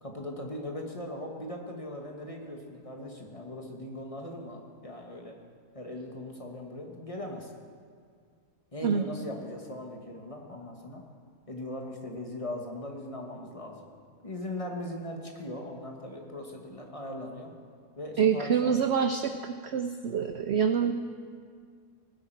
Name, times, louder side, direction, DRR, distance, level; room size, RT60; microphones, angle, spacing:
voice 1, 0.0-5.3 5.7-7.5 8.7-11.0 11.5-13.9 14.2-17.5 18.0-18.8, left 1 dB, 25° left, 1 dB, 1.1 m, -39 dB
voice 2, 18.2-20.9, right 7 dB, 75° right, 8 dB, 0.6 m, -26 dB
19.0 x 8.2 x 4.5 m, 2.1 s
omnidirectional pair, 1.7 m